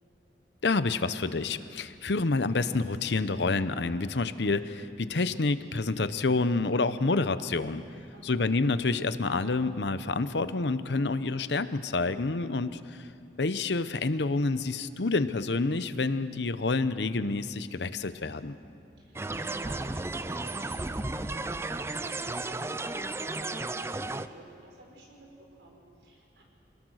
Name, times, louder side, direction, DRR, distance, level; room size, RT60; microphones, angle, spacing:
voice 1, 0.6-7.8 8.2-13.1 13.4-18.6, left 3 dB, 75° left, 13 dB, 0.8 m, -28 dB
voice 2, 8.1-8.5 19.0-26.4, right 1 dB, 85° right, 0 dB, 5.0 m, -51 dB
sound 1, 19.1-24.3, right 2 dB, 15° right, 0.4 m, -34 dB
26.5 x 19.5 x 6.4 m, 2.5 s
head